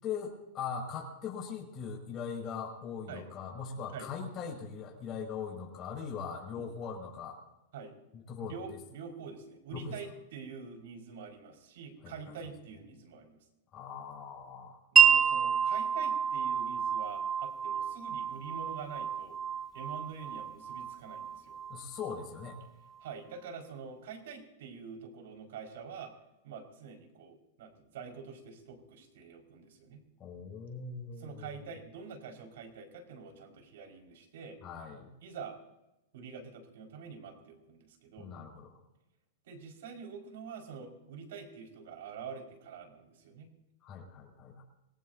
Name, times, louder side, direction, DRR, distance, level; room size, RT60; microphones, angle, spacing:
voice 1, 0.0-7.4 8.3-8.8 9.7-10.0 12.0-12.3 13.7-14.8 21.7-22.6 30.2-31.6 34.6-35.1 38.2-38.8 43.8-44.6, left 6 dB, 35° left, -1 dB, 6.2 m, -40 dB
voice 2, 8.4-13.4 14.9-19.4 19.7-21.6 23.0-26.1 26.4-30.0 31.2-34.6 35.2-35.6 36.1-38.3 39.5-43.5, right 6 dB, 70° right, 3 dB, 5.1 m, -46 dB
Wind chime, 15.0-22.6, right 7 dB, 20° right, 0.8 m, -29 dB
27.0 x 19.0 x 2.8 m, 0.96 s
hypercardioid pair, 125°, 0 cm